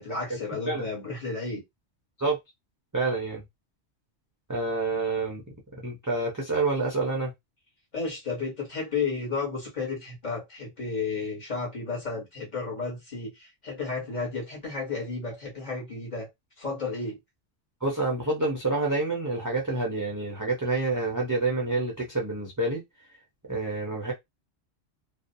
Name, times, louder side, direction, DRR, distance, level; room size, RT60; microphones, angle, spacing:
voice 1, 0.0-1.6 7.9-16.3 16.6-17.2, left 4 dB, 40° left, 1.1 m, -32 dB
voice 2, 2.9-3.4 4.5-5.4 5.8-7.3 17.8-22.8 23.5-24.1, right 3 dB, 25° right, 0.4 m, -28 dB
2.5 x 2.0 x 2.6 m
omnidirectional pair, 1.3 m